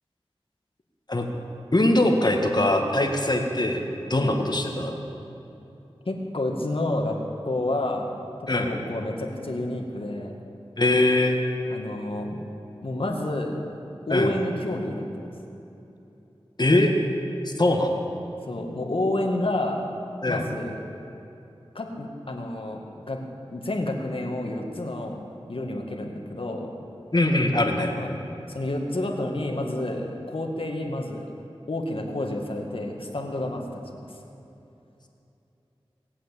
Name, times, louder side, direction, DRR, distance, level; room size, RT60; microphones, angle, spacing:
voice 1, 1.7-5.0 8.5-8.7 10.8-11.4 14.1-14.3 16.6-16.9 17.5-18.1 20.2-20.4 27.1-27.9, left 1 dB, 45° left, 2 dB, 1.8 m, -22 dB
voice 2, 6.0-7.2 7.4-8.1 8.4-10.3 11.7-12.4 12.8-13.6 14.1-15.3 18.5-19.8 20.3-20.8 21.7-22.8 23.1-23.2 23.5-25.2 25.5-26.7 27.9-28.1 28.5-31.3 31.7-33.8 34.1-34.2, left 1 dB, 65° left, 1 dB, 2.0 m, -29 dB
19.0 x 8.4 x 8.3 m, 2.9 s
wide cardioid pair, 50°, 10 cm